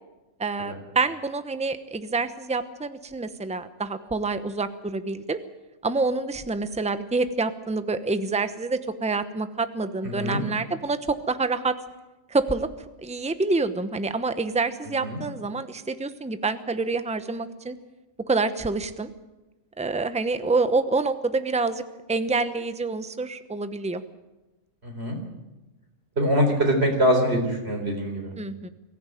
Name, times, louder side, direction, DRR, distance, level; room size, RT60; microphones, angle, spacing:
voice 1, 0.4-5.4 5.8-11.8 12.3-12.7 13.0-17.8 18.3-19.1 19.8-21.8 22.1-24.0 28.4-28.7, right 3 dB, 5° right, 10 dB, 0.8 m, -27 dB
voice 2, 10.0-10.4 15.0-15.2 24.8-25.2 26.2-28.3, equal, 55° right, 3 dB, 4.4 m, -23 dB
23.0 x 15.0 x 9.2 m, 1.1 s
omnidirectional pair, 1.3 m